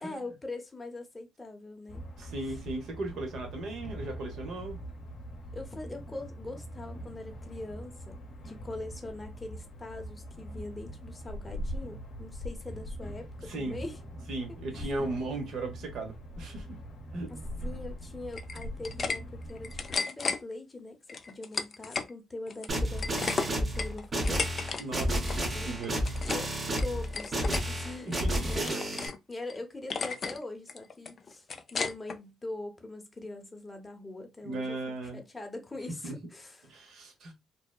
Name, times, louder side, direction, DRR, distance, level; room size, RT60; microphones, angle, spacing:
voice 1, 0.0-2.0 2.5-2.6 5.5-8.2 8.4-14.0 14.7-14.9 17.3-24.5 25.5-25.7 26.2-26.5 26.8-28.2 28.5-34.8 35.0-36.7, left 2 dB, 20° left, 0.8 m, -42 dB
sound 1, 1.9-20.0, equal, 65° left, 0.7 m, -42 dB
voice 2, 2.2-4.8 13.5-13.8 14.3-16.7 17.1-17.3 24.8-26.0 28.1-28.5 34.4-35.2 36.0-36.2 36.7-37.3, right 2 dB, 70° right, 0.8 m, -37 dB
sound 2, 18.3-19.2 19.5-20.4 21.1-22.1 22.5-24.8 25.1-25.4 25.8-26.5 26.8-27.6 28.1-29.2 29.5-29.6 29.9-30.4 30.7-32.2, left 5 dB, 45° left, 0.3 m, -34 dB
sound 3, 22.7-29.1, equal, 35° right, 0.8 m, -31 dB
2.7 x 2.1 x 2.2 m
cardioid pair, 90°, 0 cm